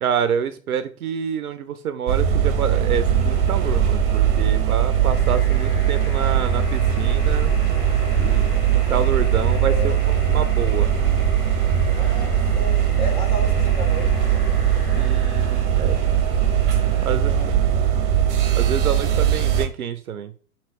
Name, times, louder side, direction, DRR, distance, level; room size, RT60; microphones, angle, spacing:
voice 1, 0.0-7.5 8.2-10.9 14.9-16.0 17.0-17.3 18.6-20.3, right 8 dB, 75° right, 0.6 m, -27 dB
sound 1, 2.1-19.7, right 9 dB, 35° right, 0.7 m, -20 dB
sound 2, 2.8-17.4, left 2 dB, 85° left, 1.8 m, -43 dB
voice 2, 11.9-14.3 17.0-17.6, left 2 dB, 15° left, 0.4 m, -33 dB
5.3 x 2.9 x 2.9 m
figure-of-eight pair, 110°, 45 cm